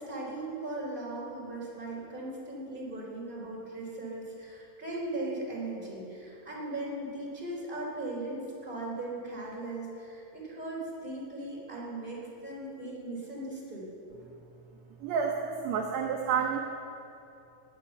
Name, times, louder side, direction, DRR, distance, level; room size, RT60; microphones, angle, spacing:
voice 1, 0.0-13.9, right 2 dB, 15° right, -4 dB, 3.9 m, -38 dB
voice 2, 15.0-16.6, right 6 dB, 70° right, 1 dB, 1.7 m, -29 dB
20.0 x 9.0 x 7.1 m, 2.8 s
omnidirectional pair, 4.0 m